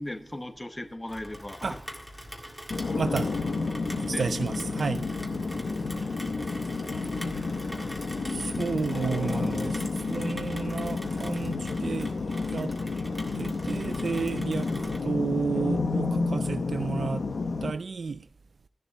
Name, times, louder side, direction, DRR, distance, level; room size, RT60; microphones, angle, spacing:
voice 1, 0.0-1.8 2.3-2.4 4.1-4.3, left 1 dB, 20° left, 0.9 m, -37 dB
Rain, 1.1-15.0, equal, ahead, 1.9 m, -43 dB
Barrow Guerney Atmosphere, 2.7-17.7, left 3 dB, 90° left, 1.0 m, -30 dB
voice 2, 3.0-3.3 4.0-5.0 8.3-12.1 12.5-12.7 13.4-17.2 17.6-18.3, right 5 dB, 75° right, 0.4 m, -31 dB
14.0 x 11.0 x 3.4 m
wide cardioid pair, 95°, 0 cm